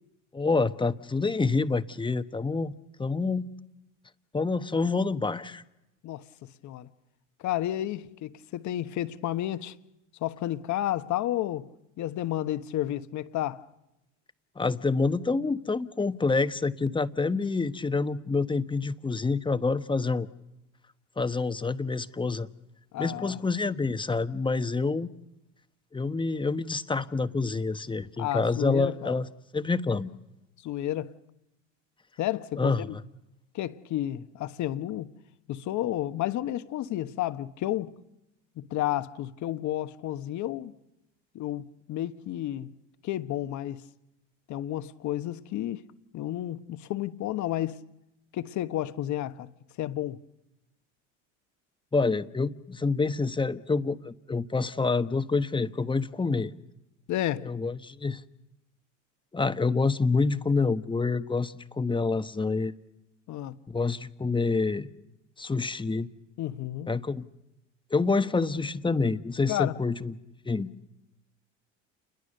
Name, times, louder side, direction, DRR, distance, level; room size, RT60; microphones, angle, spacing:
voice 1, 0.3-2.7 3.0-3.5 4.3-5.6 14.6-20.3 21.2-22.5 23.0-25.1 25.9-29.3 29.5-30.1 32.6-33.0 51.9-56.5 57.4-58.2 59.3-62.7 63.7-64.9 65.4-66.1 66.9-67.3 67.9-70.1 70.4-70.7, left 4 dB, 15° left, 1.2 m, -27 dB
voice 2, 7.4-9.7 10.2-11.7 12.0-13.7 22.9-23.4 28.2-29.2 30.6-31.1 32.2-33.0 33.5-35.1 35.5-37.9 38.6-40.7 41.3-42.7 43.0-43.8 44.5-45.8 46.1-47.8 48.3-49.5 49.8-50.2 57.1-57.5 63.3-63.6 66.4-66.9 69.5-69.8, left 13 dB, 50° left, 1.4 m, -31 dB
29.0 x 21.5 x 6.7 m
hypercardioid pair, 85°, 37 cm